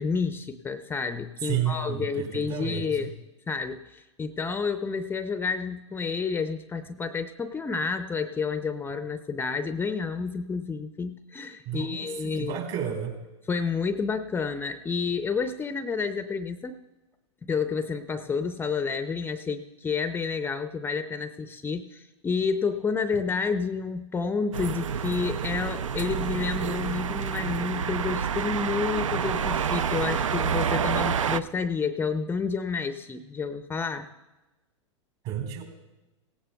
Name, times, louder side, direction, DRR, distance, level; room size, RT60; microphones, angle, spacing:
voice 1, 0.0-3.1 3.5-12.6 13.5-16.8 17.4-34.1, left 5 dB, 15° left, 10 dB, 0.5 m, -30 dB
voice 2, 1.5-3.1 11.6-13.1 35.2-35.6, right 9 dB, 50° right, 4 dB, 3.1 m, -31 dB
sound 1, 24.5-31.4, right 7 dB, 85° right, 0.5 m, -28 dB
17.5 x 17.0 x 2.3 m, 1.1 s
hypercardioid pair, 110°, 16 cm